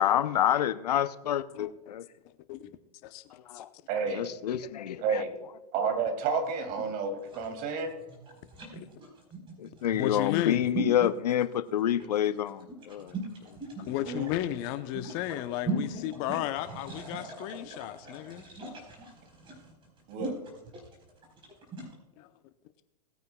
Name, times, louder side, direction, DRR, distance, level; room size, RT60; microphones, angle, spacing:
voice 1, 0.0-2.0 3.3-3.7 4.1-5.2 9.6-13.2 13.5-13.6, left 10 dB, 80° left, 0.7 m, -28 dB
voice 2, 1.5-1.9 2.2-2.8 3.0-3.2 3.5-3.6 8.7-8.9 10.0-10.6 13.9-18.4 22.2-22.3, left 14 dB, 45° left, 0.9 m, -34 dB
voice 3, 3.9-4.3 5.0-5.3 5.7-7.9 13.8-14.3 20.1-20.4, right 5 dB, 45° right, 2.9 m, -30 dB
sound 1, 7.2-21.9, right 2 dB, 25° right, 4.3 m, -39 dB
20.0 x 9.3 x 2.3 m
hypercardioid pair, 120°, 20 cm